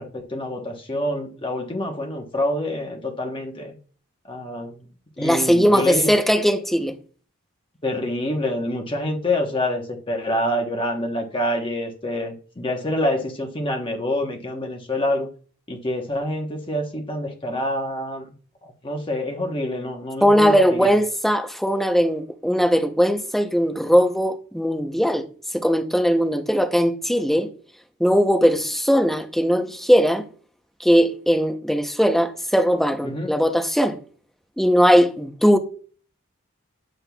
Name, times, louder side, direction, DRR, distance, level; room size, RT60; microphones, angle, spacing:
voice 1, 0.0-3.7 4.3-4.7 5.2-6.1 7.8-15.3 15.7-18.3 18.6-20.9 33.0-33.4, left 1 dB, 25° left, 1.0 m, -26 dB
voice 2, 5.2-7.0 20.2-25.3 25.5-27.5 28.0-30.2 30.8-34.0 34.6-35.6, equal, ahead, 0.6 m, -19 dB
9.8 x 7.6 x 2.3 m
head